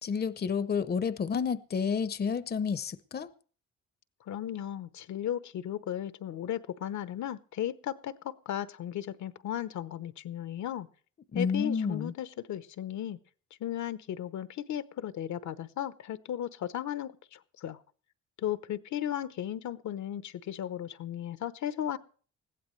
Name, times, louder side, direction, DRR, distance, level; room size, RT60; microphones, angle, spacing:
voice 1, 0.0-3.3 11.3-12.1, left 6 dB, 35° left, 0.8 m, -30 dB
voice 2, 4.3-10.9 11.3-13.2 13.6-17.8 18.4-22.0, left 11 dB, 70° left, 0.9 m, -35 dB
20.5 x 15.5 x 3.2 m
cardioid pair, 90°, 30 cm